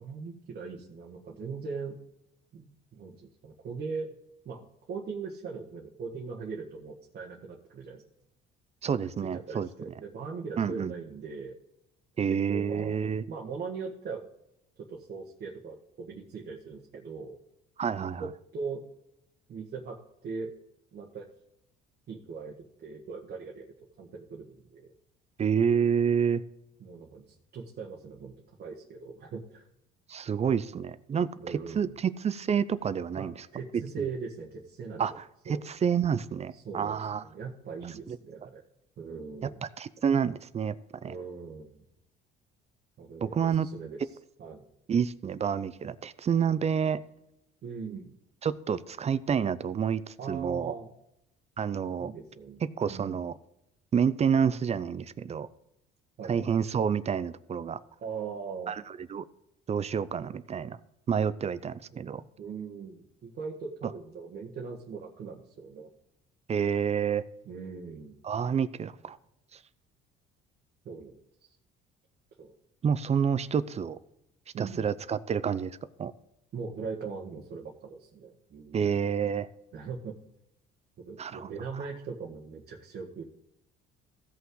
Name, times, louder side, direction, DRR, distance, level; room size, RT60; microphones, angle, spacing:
voice 1, 0.0-2.0 2.5-4.1 4.4-8.0 9.2-11.5 12.3-13.0 13.3-14.2 14.8-17.4 18.0-18.8 19.5-20.5 20.9-21.3 22.1-24.9 26.8-29.7 31.4-32.0 33.2-33.3 33.5-35.2 35.4-35.6 36.5-38.6 39.0-39.6 41.0-41.8 43.0-44.6 46.4-46.6 47.6-48.1 50.2-50.9 52.0-52.6 52.9-53.2 56.2-56.5 58.0-58.7 61.9-62.0 62.4-65.9 67.4-68.2 70.8-71.5 72.4-72.5 74.5-74.9 76.5-79.0 79.7-80.2 81.0-83.2, right 5 dB, 50° right, -2 dB, 1.5 m, -40 dB
voice 2, 8.8-9.7 10.6-10.9 12.2-13.2 17.8-18.3 25.4-26.4 30.1-33.3 34.0-34.1 35.0-37.2 38.1-38.2 39.4-39.5 39.8-40.8 41.0-41.1 43.2-43.7 44.9-47.0 48.4-50.7 51.6-52.1 52.6-53.3 53.9-55.5 56.3-57.8 58.7-58.8 59.1-59.2 59.7-60.8 61.1-62.2 66.5-67.2 68.2-69.2 72.8-74.0 74.6-75.7 76.0-76.1 78.7-79.5 81.2-81.5, right 7 dB, 30° right, 16 dB, 0.5 m, -28 dB
15.5 x 5.6 x 3.9 m, 0.83 s
cardioid pair, 95°, 20 cm